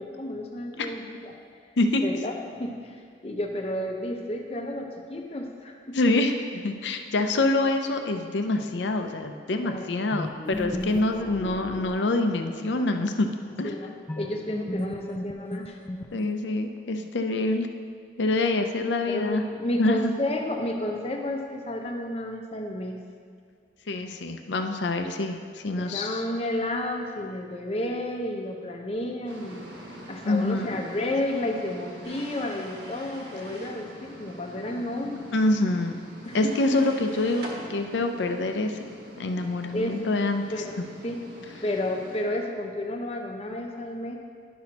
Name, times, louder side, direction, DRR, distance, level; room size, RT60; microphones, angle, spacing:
voice 1, 0.0-1.3 2.0-2.3 2.6-6.0 7.3-7.4 9.5-10.2 13.6-15.8 19.1-23.0 25.8-29.7 30.1-35.3 36.2-36.5 39.7-40.0 40.5-40.8 41.0-41.2 41.6-44.2, left 1 dB, 35° left, 2 dB, 0.7 m, -31 dB
voice 2, 5.9-13.3 13.6-13.7 16.1-17.7 18.2-19.4 19.8-20.1 23.9-26.2 30.2-30.8 35.3-36.0 36.3-38.8 39.2-40.4, left 2 dB, 80° left, 6 dB, 0.6 m, -26 dB
sound 1, 10.1-12.7 14.1-16.5, left 1 dB, 10° left, 0.3 m, -35 dB
sound 2, 29.3-42.2, right 1 dB, 80° right, 1.2 m, -45 dB
sound 3, 32.0-33.8 36.2-37.6, right 1 dB, 60° right, 1.5 m, -43 dB
11.0 x 6.0 x 2.9 m, 2.2 s
head